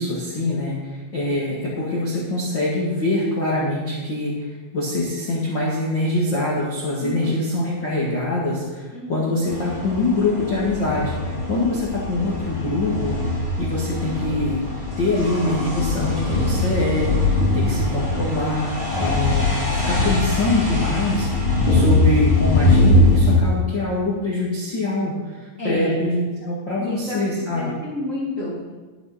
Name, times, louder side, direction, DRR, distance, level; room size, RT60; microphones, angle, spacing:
voice 1, 0.0-13.2 13.6-14.7 15.0-19.5 19.9-27.6, left 2 dB, 75° left, -6 dB, 1.0 m, -24 dB
voice 2, 7.0-7.4 8.9-9.5 17.5-18.0 25.6-26.0 26.8-27.2 27.5-28.7, left 1 dB, 80° right, -7 dB, 0.7 m, -30 dB
sound 1, 9.5-23.4, left 2 dB, 20° left, 1.1 m, -21 dB
12.5 x 10.0 x 4.3 m, 1.3 s
omnidirectional pair, 5.7 m